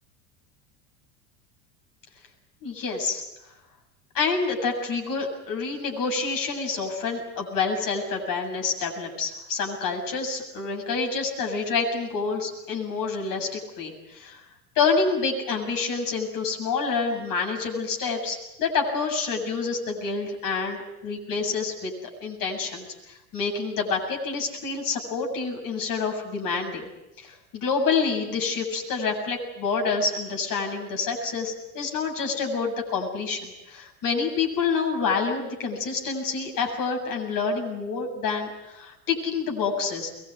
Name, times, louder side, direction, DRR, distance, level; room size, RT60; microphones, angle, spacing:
voice 1, 2.6-3.2 4.1-14.4 14.7-26.8 27.2-40.1, left 4 dB, 40° left, 2 dB, 8.0 m, -28 dB
23.5 x 22.5 x 9.6 m, 0.92 s
figure-of-eight pair, 80°, 49 cm